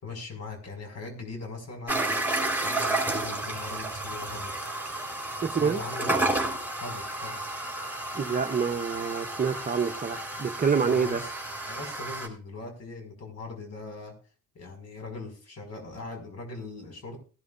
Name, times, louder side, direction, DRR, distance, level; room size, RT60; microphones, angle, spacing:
voice 1, 0.0-4.5 5.5-6.2 6.8-7.4 10.8-11.3 11.7-14.1 14.5-17.2, left 3 dB, 60° left, 5.5 m, -40 dB
sound 1, 1.9-12.3, right 2 dB, 5° right, 4.1 m, -31 dB
voice 2, 5.4-5.8 8.1-11.2, right 6 dB, 30° right, 0.9 m, -27 dB
19.0 x 12.0 x 2.5 m
cardioid pair, 90°, 30 cm